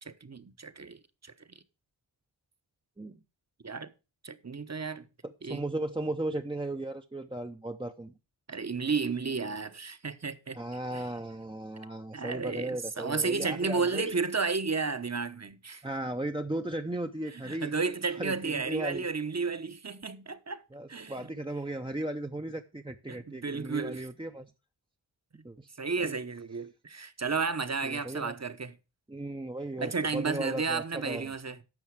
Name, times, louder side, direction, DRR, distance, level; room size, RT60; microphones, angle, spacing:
voice 1, 0.0-1.3 3.6-3.9 4.2-5.1 5.4-5.7 8.5-10.6 10.9-11.1 12.1-15.8 17.3-20.6 20.9-21.3 23.1-24.1 25.8-28.8 29.8-31.6, right 4 dB, 35° right, 1.1 m, -33 dB
voice 2, 5.2-8.1 10.6-14.1 15.8-17.7 18.2-19.1 20.7-24.5 25.4-25.7 26.0-26.1 27.8-28.3 29.1-31.3, right 1 dB, 10° right, 0.7 m, -36 dB
11.0 x 6.9 x 4.8 m
cardioid pair, 45°, 46 cm